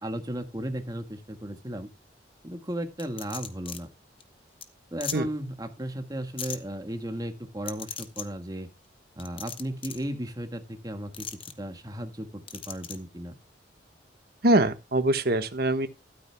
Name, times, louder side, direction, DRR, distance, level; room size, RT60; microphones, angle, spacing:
voice 1, 0.0-1.9 2.4-3.9 4.9-8.7 9.2-11.3 11.6-13.3, right 1 dB, 20° right, 1.6 m, -35 dB
sound 1, 3.0-3.8 4.2-4.3 4.6-4.7 5.0-5.2 6.4-6.6 7.7-8.3 9.2-10.0 11.1-11.5 12.5-13.0, left 8 dB, 30° left, 1.2 m, -37 dB
voice 2, 14.4-15.9, right 1 dB, 55° right, 1.4 m, -23 dB
13.0 x 13.0 x 2.3 m
head